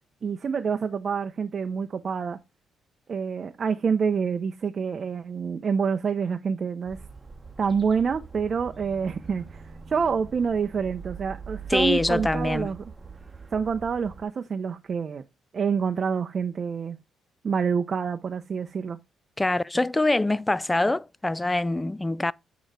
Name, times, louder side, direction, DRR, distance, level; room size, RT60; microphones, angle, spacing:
voice 1, 0.2-2.4 3.1-7.0 7.6-12.8 13.5-15.2 15.5-17.0 17.4-19.0, right 6 dB, 45° right, 0.6 m, -27 dB
sound 1, 6.9-14.2, right 5 dB, 25° right, 1.0 m, -42 dB
voice 2, 11.7-12.7 19.4-22.3, left 2 dB, 15° left, 0.3 m, -24 dB
9.0 x 3.0 x 4.6 m
cardioid pair, 90°, 0 cm